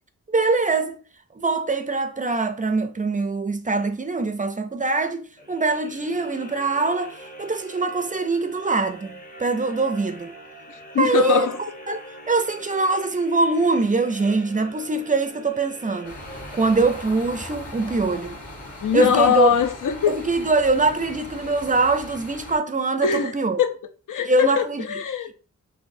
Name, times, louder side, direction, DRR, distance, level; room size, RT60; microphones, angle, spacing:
voice 1, 0.3-1.0 1.4-10.3 11.0-16.2 16.5-18.4 18.9-19.5 20.1-23.6 24.2-24.8, right 3 dB, 25° right, 0.4 m, -23 dB
sound 1, 5.3-17.6, right 1 dB, 25° left, 0.7 m, -43 dB
voice 2, 10.7-11.6 11.9-12.0 18.8-20.2 23.0-23.3 23.6-23.7 24.1-25.3, left 8 dB, 80° left, 0.6 m, -22 dB
sound 2, 16.0-22.6, left 1 dB, 50° left, 1.3 m, -39 dB
4.6 x 2.9 x 2.6 m
wide cardioid pair, 120°, 31 cm